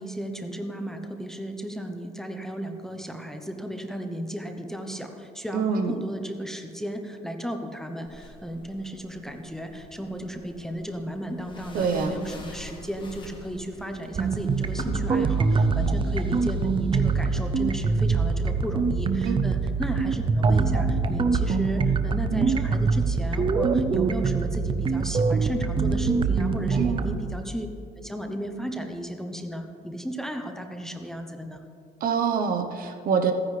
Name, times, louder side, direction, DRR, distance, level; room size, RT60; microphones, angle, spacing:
voice 1, 0.0-27.7 28.0-31.6, equal, 5° left, 5 dB, 0.8 m, -34 dB
voice 2, 5.5-5.9 11.7-12.2 19.2-19.3 26.8-27.2 32.0-33.3, right 6 dB, 60° right, 6 dB, 0.9 m, -25 dB
sound 1, 8.1-14.8, left 2 dB, 30° left, 1.6 m, -46 dB
sound 2, 14.1-27.1, right 4 dB, 30° right, 0.5 m, -24 dB
14.5 x 9.7 x 3.3 m, 2.4 s
cardioid pair, 110°, 17 cm